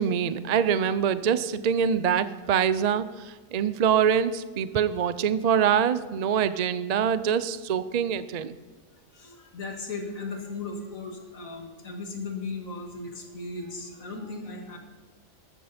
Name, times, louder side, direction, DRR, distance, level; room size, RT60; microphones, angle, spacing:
voice 1, 0.0-3.0 3.5-8.5, right 8 dB, 55° right, 13 dB, 0.4 m, -24 dB
voice 2, 9.1-14.8, left 3 dB, 70° left, 2 dB, 2.6 m, -37 dB
14.0 x 13.0 x 4.3 m, 1.5 s
omnidirectional pair, 1.5 m